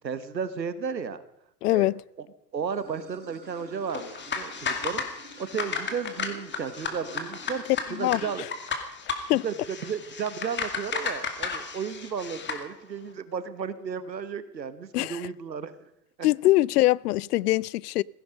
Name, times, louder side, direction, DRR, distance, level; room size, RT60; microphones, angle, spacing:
voice 1, 0.0-1.2 1.7-1.9 2.5-7.6 7.9-8.4 9.4-15.7 16.2-16.3, right 6 dB, 90° right, 1.4 m, -34 dB
voice 2, 1.6-2.0 7.9-8.2 9.3-9.4 14.9-15.2 16.2-18.0, left 17 dB, 70° left, 0.5 m, -23 dB
Water / Sink (filling or washing), 2.7-8.4, right 3 dB, 20° right, 5.7 m, -49 dB
sound 1, 3.9-12.6, left 5 dB, 20° left, 2.3 m, -34 dB
16.0 x 16.0 x 5.2 m
hypercardioid pair, 95°, 50 cm